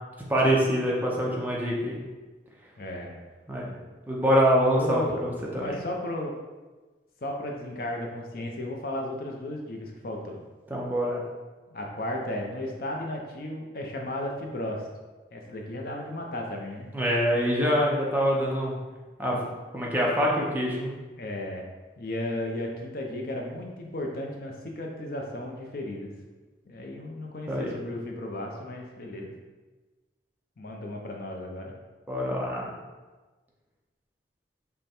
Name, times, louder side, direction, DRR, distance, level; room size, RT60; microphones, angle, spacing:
voice 1, 0.3-2.0 3.5-3.7 4.1-5.8 10.7-11.2 16.9-18.8 19.2-19.4 19.7-20.9 27.5-27.7 32.1-32.7, equal, 10° right, -4 dB, 0.7 m, -25 dB
voice 2, 2.8-3.2 4.7-5.2 5.6-6.3 7.2-10.4 11.7-14.9 15.3-16.9 21.2-21.7 22.0-26.1 26.7-29.3 30.6-31.8, left 1 dB, 55° left, 1 dB, 0.6 m, -34 dB
5.3 x 2.2 x 4.3 m, 1.3 s
head